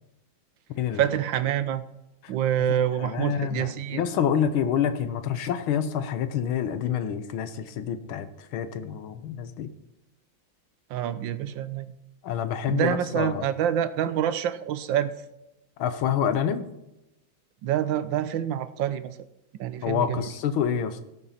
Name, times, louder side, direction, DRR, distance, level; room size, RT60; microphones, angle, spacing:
voice 1, 0.9-1.8 2.3-4.0 10.9-11.9 12.7-15.1 17.6-19.2 19.6-20.3, right 10 dB, 75° right, 13 dB, 1.3 m, -27 dB
voice 2, 3.0-8.3 8.5-9.7 12.2-13.5 15.8-16.7 19.8-21.0, left 8 dB, 90° left, 11 dB, 1.8 m, -27 dB
17.5 x 6.9 x 4.3 m, 0.93 s
omnidirectional pair, 2.2 m